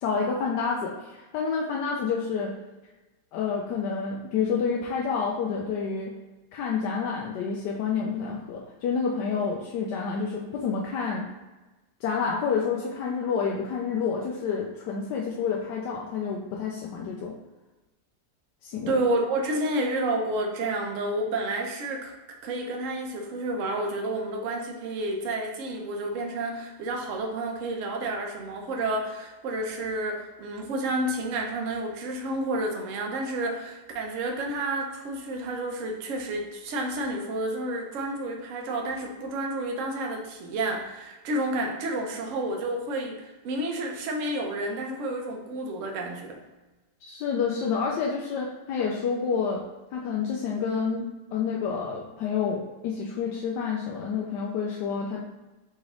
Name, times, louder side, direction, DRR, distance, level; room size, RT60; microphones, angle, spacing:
voice 1, 0.0-2.5 3.3-6.1 6.5-11.2 12.0-17.3 18.6-19.0 47.0-49.6 49.9-55.2, left 5 dB, 85° left, -2 dB, 1.2 m, -29 dB
voice 2, 18.9-22.1 22.4-46.4, right 2 dB, 60° right, 2 dB, 0.9 m, -30 dB
4.0 x 3.1 x 3.7 m, 1.1 s
omnidirectional pair, 1.8 m